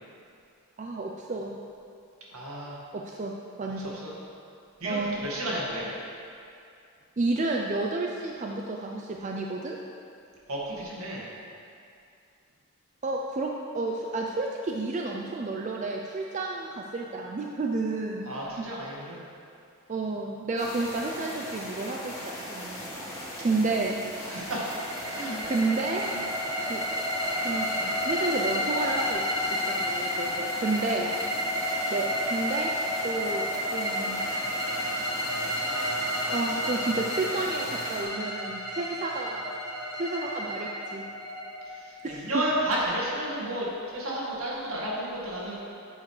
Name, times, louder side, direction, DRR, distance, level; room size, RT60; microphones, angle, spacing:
voice 1, 0.8-1.6 2.9-4.0 4.8-5.2 7.2-9.8 13.0-18.3 18.6-18.7 19.9-22.9 23.2-24.0 25.1-26.1 26.6-26.8 27.4-29.2 29.7-31.1 31.9-32.7 33.0-33.4 33.7-34.2 36.3-39.4 39.9-41.0 42.0-42.4, right 3 dB, 35° right, 0 dB, 0.4 m, -31 dB
voice 2, 2.3-2.8 3.8-4.1 4.8-5.9 10.5-11.2 18.3-19.2 24.2-24.6 25.1-25.5 41.7-45.5, right 1 dB, 75° right, -5 dB, 2.0 m, -32 dB
sound 1, 20.6-38.0, left 1 dB, 15° left, 1.4 m, -39 dB
sound 2, 24.3-42.1, equal, 15° right, 1.1 m, -31 dB
9.4 x 8.1 x 3.3 m, 2.5 s
head